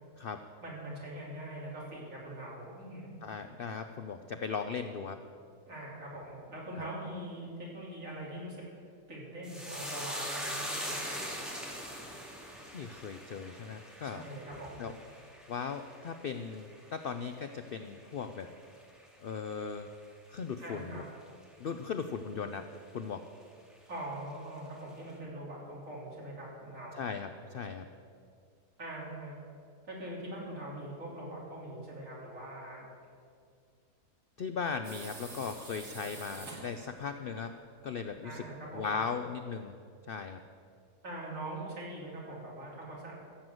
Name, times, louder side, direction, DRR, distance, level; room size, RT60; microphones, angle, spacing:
voice 1, 0.6-3.1 5.7-8.6 9.1-11.4 14.0-14.9 20.6-21.0 23.9-27.1 28.8-29.4 29.8-32.8 38.2-39.0 41.0-43.1, right 1 dB, 55° right, -4 dB, 3.5 m, -42 dB
voice 2, 3.2-5.2 6.8-6.9 12.6-14.2 14.8-14.9 15.5-18.5 19.2-19.9 20.3-21.0 21.6-22.7 22.9-23.2 27.0-27.9 34.4-37.5 37.8-38.4 38.7-39.8 40.1-40.4, left 5 dB, 70° left, 8 dB, 0.5 m, -38 dB
sound 1, 9.4-18.0 18.3-19.0 19.3-19.5, equal, ahead, 2.0 m, -42 dB
sound 2, 34.8-37.0, right 3 dB, 85° right, 2.9 m, -47 dB
14.5 x 7.9 x 7.7 m, 2.3 s
omnidirectional pair, 1.6 m